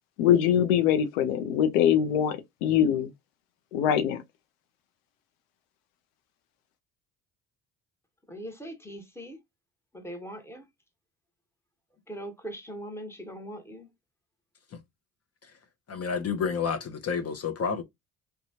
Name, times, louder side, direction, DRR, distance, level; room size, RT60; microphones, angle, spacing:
voice 1, 0.2-3.1 3.7-4.2, left 9 dB, 90° left, 0.6 m, -23 dB
voice 2, 8.3-9.4 9.9-10.6 12.1-13.9, right 1 dB, 5° left, 1.1 m, -40 dB
voice 3, 15.9-17.8, left 6 dB, 40° left, 0.7 m, -29 dB
2.8 x 2.2 x 2.8 m
hypercardioid pair, 55°, 39 cm